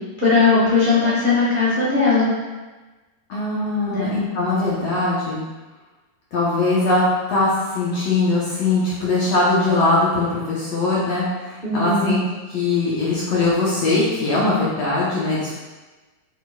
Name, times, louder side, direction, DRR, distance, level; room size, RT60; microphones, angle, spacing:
voice 1, 0.2-2.3 3.8-4.2 11.6-12.1, left 4 dB, 60° right, -9 dB, 0.5 m, -18 dB
voice 2, 3.3-5.4 6.3-7.0 7.3-12.2 12.5-15.5, left 3 dB, 65° left, -7 dB, 1.7 m, -21 dB
7.1 x 6.2 x 2.4 m, 1.2 s
omnidirectional pair, 4.1 m